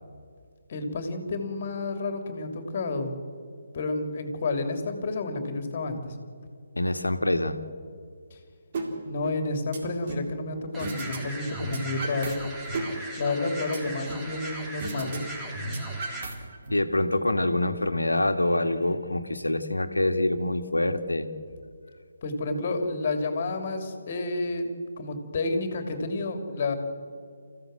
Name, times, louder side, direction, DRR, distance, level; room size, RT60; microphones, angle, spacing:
voice 1, 0.7-3.1 3.7-6.2 8.3-8.4 9.0-12.4 13.2-15.3 22.2-24.7 25.0-26.7, left 2 dB, 40° left, 7 dB, 3.1 m, -30 dB
voice 2, 6.8-7.6 16.7-21.3, left 1 dB, 75° left, 8 dB, 1.9 m, -25 dB
sound 1, 8.7-8.9 9.2-10.3 10.8-11.2 11.5-12.3 12.7-14.3 14.8-15.2 15.5-16.7, right 3 dB, 35° right, 3.8 m, -35 dB
sound 2, 10.7-16.2, right 1 dB, 10° right, 2.4 m, -39 dB
28.5 x 15.5 x 7.8 m, 2.2 s
figure-of-eight pair, 145°, 0 cm